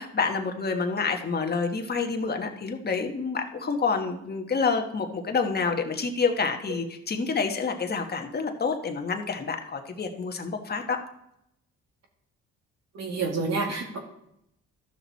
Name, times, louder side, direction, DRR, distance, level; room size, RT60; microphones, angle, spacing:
voice 1, 0.0-11.0, left 5 dB, 30° left, 4 dB, 1.3 m, -28 dB
voice 2, 12.9-14.0, right 4 dB, 60° right, 1 dB, 2.3 m, -28 dB
13.0 x 6.1 x 4.1 m, 0.78 s
cardioid pair, 90°, 30 cm